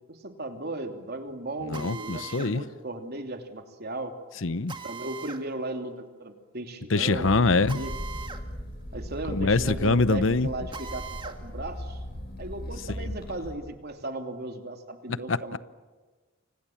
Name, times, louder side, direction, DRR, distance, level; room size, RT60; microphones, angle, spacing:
voice 1, 0.1-4.1 4.8-7.4 7.7-7.9 8.9-12.0 12.4-15.6, right 2 dB, 55° right, 3.0 m, -36 dB
voice 2, 1.6-2.6 4.4-4.7 6.9-7.8 9.3-10.5 13.0-13.1 15.3-15.6, left 3 dB, 70° left, 0.9 m, -24 dB
Drill, 1.7-2.5 4.7-5.4 7.7-8.4 8.8-8.9 10.7-11.4, right 5 dB, 25° right, 1.8 m, -40 dB
sound 1, 7.2-13.5, equal, 55° left, 6.0 m, -38 dB
30.0 x 25.5 x 7.3 m
head